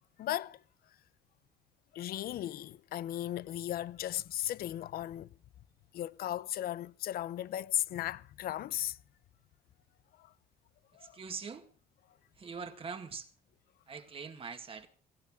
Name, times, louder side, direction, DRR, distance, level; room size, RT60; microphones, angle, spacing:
voice 1, 0.2-0.6 1.9-5.3 5.9-9.0 10.2-10.3 10.9-11.2, left 13 dB, 65° left, 0.7 m, -36 dB
voice 2, 11.0-11.7 12.4-13.3 13.9-14.9, right 5 dB, 35° right, 2.1 m, -43 dB
17.5 x 16.5 x 3.7 m
cardioid pair, 110°, 17 cm